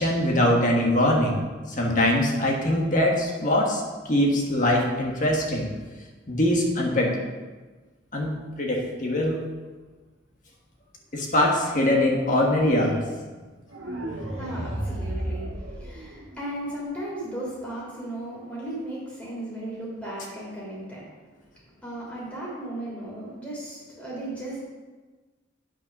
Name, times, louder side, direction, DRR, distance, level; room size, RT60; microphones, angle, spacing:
voice 1, 0.0-1.4 1.7-3.8 4.1-5.7 6.3-7.2 8.1-8.3 8.6-9.4 11.1-13.0, left 1 dB, 40° left, -1 dB, 1.5 m, -22 dB
sound 1, 13.7-16.7, right 1 dB, 80° right, 1.6 m, -33 dB
voice 2, 14.4-21.0 21.8-24.6, right 1 dB, 5° left, -6 dB, 3.1 m, -36 dB
8.8 x 5.6 x 6.0 m, 1.3 s
head